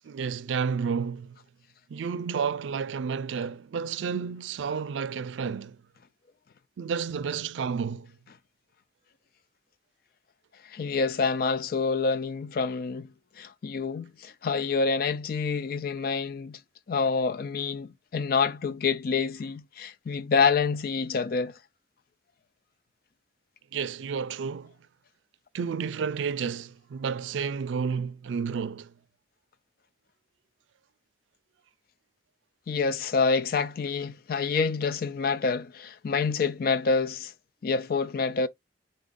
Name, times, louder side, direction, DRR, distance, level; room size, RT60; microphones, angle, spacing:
voice 1, 0.0-1.3 1.9-5.8 6.8-8.1 23.7-24.7 25.5-28.9, right 6 dB, 90° right, 0.4 m, -31 dB
voice 2, 10.7-13.1 13.4-16.6 16.9-21.5 32.7-37.3 37.6-38.5, left 5 dB, 50° left, 0.4 m, -27 dB
3.8 x 2.6 x 3.7 m
head